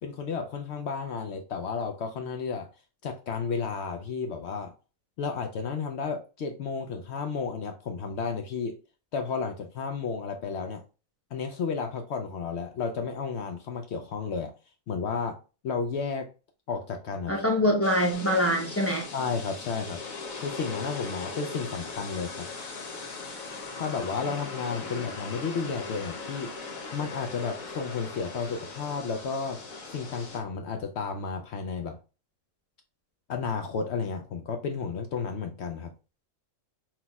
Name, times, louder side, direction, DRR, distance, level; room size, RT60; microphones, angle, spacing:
voice 1, 0.0-2.7 3.0-4.7 5.2-8.8 9.1-10.8 11.3-14.5 14.9-15.4 15.6-16.3 16.7-17.4 19.1-20.0 20.4-22.5 23.8-26.5 26.9-29.6 29.9-32.0 33.3-35.9, left 5 dB, 65° left, 0.7 m, -32 dB
voice 2, 17.3-19.1 24.8-25.1, equal, 15° left, 0.6 m, -25 dB
sound 1, 17.8-30.4, left 4 dB, 80° left, 1.5 m, -39 dB
5.7 x 2.9 x 2.3 m
omnidirectional pair, 1.4 m